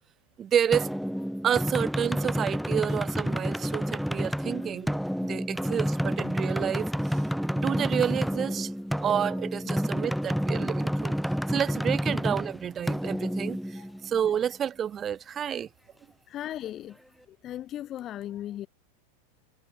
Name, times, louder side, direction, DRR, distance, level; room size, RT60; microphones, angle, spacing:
voice 1, 0.4-0.9 1.4-7.3 7.5-8.7 9.0-15.7, right 9 dB, 25° right, 3.2 m, -30 dB
sound 1, 0.7-14.3, equal, ahead, 1.9 m, -29 dB
voice 2, 16.3-17.0 17.3-18.7, left 12 dB, 30° left, 1.0 m, -38 dB
figure-of-eight pair, 90°, 0 cm